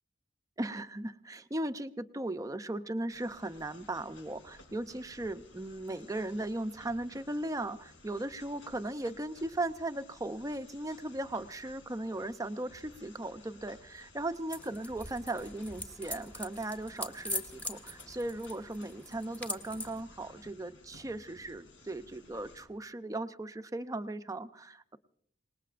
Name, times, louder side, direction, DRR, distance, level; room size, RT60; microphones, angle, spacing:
voice 1, 0.6-25.0, right 1 dB, 15° right, 10 dB, 0.6 m, -37 dB
sound 1, 3.1-22.7, left 2 dB, 75° left, 3.5 m, -57 dB
sound 2, 14.5-20.0, left 1 dB, 10° left, 1.3 m, -42 dB
27.0 x 19.5 x 2.5 m, 0.68 s
head